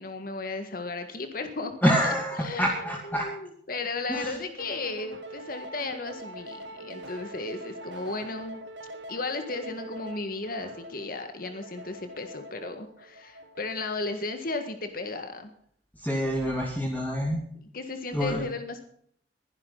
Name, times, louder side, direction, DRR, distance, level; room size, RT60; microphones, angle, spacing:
voice 1, 0.0-8.6 9.1-15.5 17.7-18.8, left 3 dB, 55° left, 7 dB, 1.8 m, -35 dB
voice 2, 1.8-3.3 4.1-4.4 16.0-17.4 18.1-18.4, equal, 10° left, -1 dB, 2.4 m, -26 dB
sound 1, 4.6-14.0, right 1 dB, 90° right, 1.6 m, -44 dB
21.5 x 11.5 x 4.0 m, 0.63 s
head